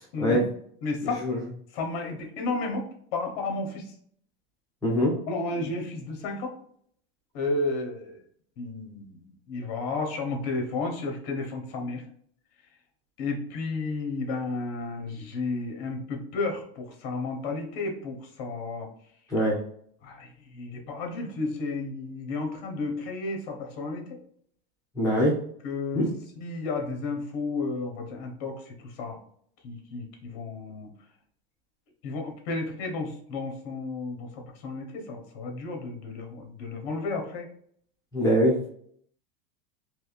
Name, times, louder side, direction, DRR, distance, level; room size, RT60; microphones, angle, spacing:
voice 1, 0.1-0.4 0.8-1.2 1.7-3.9 5.3-6.5 7.3-8.2 8.6-12.0 13.2-18.9 20.0-24.2 25.6-26.0 26.4-29.2 29.6-30.9 32.0-37.5, left 3 dB, 50° left, 3 dB, 1.0 m, -32 dB
voice 2, 1.0-1.4 4.8-5.1 19.3-19.6 24.9-25.3 25.9-26.1 38.1-38.5, equal, 10° left, -6 dB, 0.9 m, -23 dB
3.4 x 2.9 x 2.5 m, 0.63 s
supercardioid pair, 170°, 30 cm